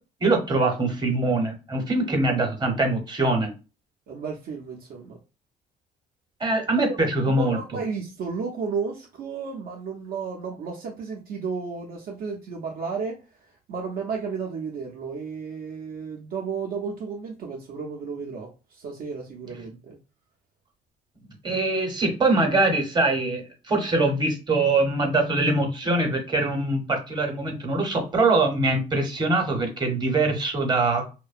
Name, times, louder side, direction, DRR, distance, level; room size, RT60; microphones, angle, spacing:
voice 1, 0.2-3.5 6.4-7.8 21.4-31.1, right 2 dB, 25° right, 0.8 m, -23 dB
voice 2, 4.1-5.2 6.7-7.0 7.3-20.0, right 5 dB, 65° right, 0.5 m, -33 dB
2.6 x 2.1 x 2.4 m
cardioid pair, 110°, 17 cm